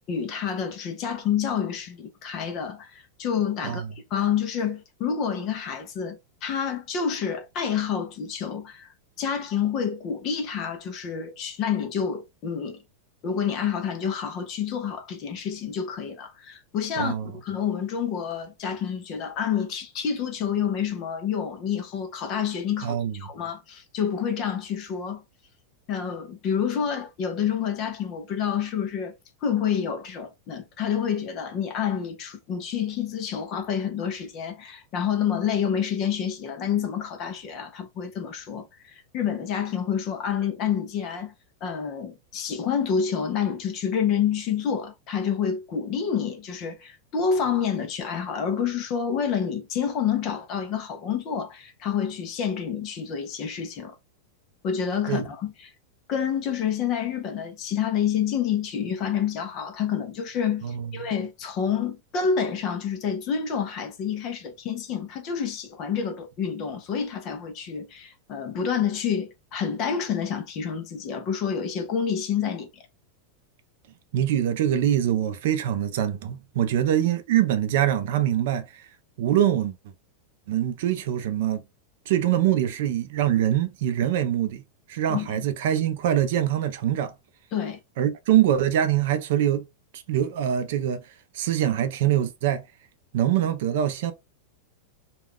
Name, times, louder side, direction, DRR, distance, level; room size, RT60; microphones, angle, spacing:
voice 1, 0.1-3.8 4.1-8.9 9.2-12.8 13.2-25.2 25.9-29.1 29.4-41.3 41.6-53.9 54.6-55.7 56.1-72.8 85.1-85.4 87.5-87.8, left 7 dB, 25° left, 0.5 m, -28 dB
voice 2, 17.0-17.3 22.8-23.1 55.1-55.2 60.6-61.1 74.1-78.8 79.2-79.7 80.5-81.6 82.1-84.6 84.9-87.1 88.0-89.7 89.9-91.0 91.3-92.6 93.1-94.1, right 11 dB, 55° right, 0.4 m, -24 dB
2.3 x 2.2 x 3.4 m
supercardioid pair, 180°, 0 cm